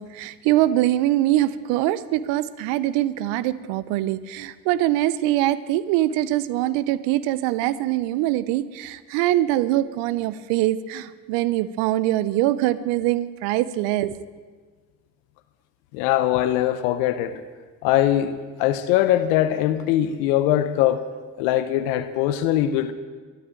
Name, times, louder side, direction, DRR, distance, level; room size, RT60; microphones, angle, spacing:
voice 1, 0.0-14.3, right 14 dB, 85° right, 17 dB, 0.7 m, -23 dB
voice 2, 15.9-17.4 17.8-21.0 21.4-22.9, left 12 dB, 90° left, 12 dB, 0.7 m, -21 dB
12.5 x 10.5 x 8.9 m, 1.4 s
hypercardioid pair, 50°, 42 cm